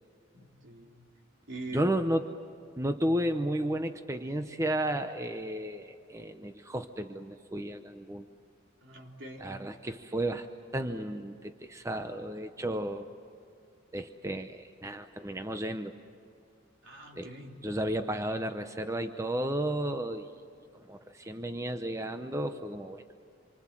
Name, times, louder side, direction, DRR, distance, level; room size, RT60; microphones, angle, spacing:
voice 1, 0.3-1.1 1.5-1.9 8.8-9.8 12.6-12.7 16.8-17.7, right 2 dB, 70° right, 1 dB, 3.4 m, -44 dB
voice 2, 1.7-2.3 2.8-8.3 9.4-10.5 10.7-13.1 13.9-15.9 17.2-17.3 17.6-20.3 20.9-23.0, right 1 dB, 15° right, 7 dB, 0.7 m, -33 dB
27.0 x 24.5 x 7.5 m, 2.5 s
head